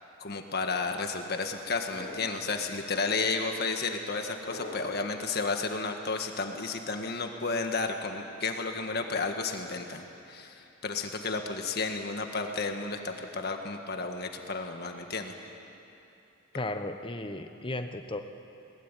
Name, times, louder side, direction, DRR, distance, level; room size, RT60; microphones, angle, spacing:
voice 1, 0.2-10.0 10.3-15.3, left 4 dB, 55° left, 4 dB, 1.7 m, -32 dB
sound 1, 1.9-2.8 4.4-5.4, left 1 dB, 80° left, 4.4 m, -43 dB
voice 2, 16.5-18.2, left 2 dB, 25° left, 7 dB, 1.2 m, -35 dB
21.5 x 20.0 x 9.2 m, 2.8 s
head